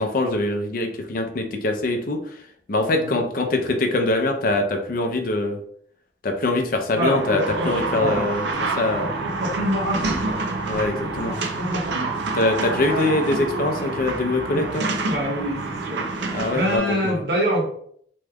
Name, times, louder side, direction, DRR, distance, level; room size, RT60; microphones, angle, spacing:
voice 1, 0.0-2.2 2.7-5.6 6.2-9.1 10.6-11.4 12.3-14.9 16.3-17.2, left 2 dB, 50° left, 4 dB, 0.5 m, -23 dB
sound 1, 7.0-16.8, right 3 dB, 80° right, 0.5 m, -27 dB
voice 2, 7.6-8.3 9.2-10.4 11.2-12.1 12.9-13.1 14.5-14.7 15.1-17.6, equal, 65° right, -2 dB, 1.1 m, -26 dB
3.0 x 2.3 x 3.4 m, 0.63 s
head